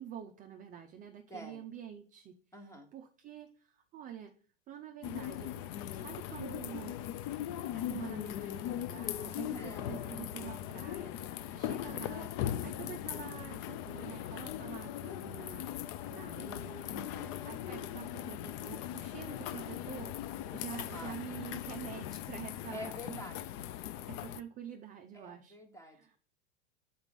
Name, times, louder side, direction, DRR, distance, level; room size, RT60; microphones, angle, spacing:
voice 1, 0.0-4.3 4.7-7.0 7.7-11.2 11.5-16.9 17.5-23.2 24.1-25.6 25.8-26.2, right 9 dB, 25° right, 4 dB, 0.5 m, -47 dB
voice 2, 1.3-1.6 2.5-2.9 9.4-9.8 16.9-17.4 20.7-21.2 22.7-23.4 25.1-26.2, left 1 dB, 10° left, 6 dB, 1.1 m, -47 dB
sound 1, 5.0-24.4, left 11 dB, 40° left, 0.5 m, -39 dB
5.9 x 4.2 x 5.2 m, 0.43 s
hypercardioid pair, 105°, 36 cm